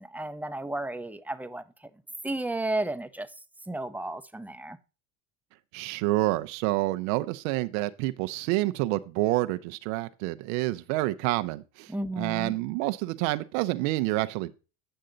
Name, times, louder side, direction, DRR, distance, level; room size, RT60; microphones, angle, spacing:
voice 1, 0.0-1.6 2.2-3.3 3.7-4.8 11.9-12.6, right 2 dB, 5° right, 0.7 m, -33 dB
voice 2, 5.7-14.5, right 18 dB, 75° right, 0.7 m, -28 dB
8.9 x 6.5 x 3.9 m
supercardioid pair, 90°, 40 cm